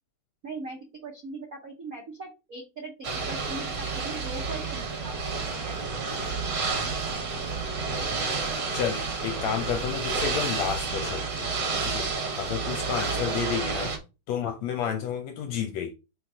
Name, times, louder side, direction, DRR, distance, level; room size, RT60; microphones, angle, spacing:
voice 1, 0.4-5.9 6.2-6.4 6.6-6.8 7.0-7.1 7.4-7.5 7.9-8.2, right 3 dB, 65° right, 0.8 m, -41 dB
Ocean / Boat Water vehicle, 3.0-14.0, right 4 dB, 45° right, 1.5 m, -30 dB
voice 2, 8.7-12.1 12.4-13.9 14.3-15.9, left 8 dB, 75° left, 1.7 m, -31 dB
4.6 x 4.4 x 4.9 m
omnidirectional pair, 3.6 m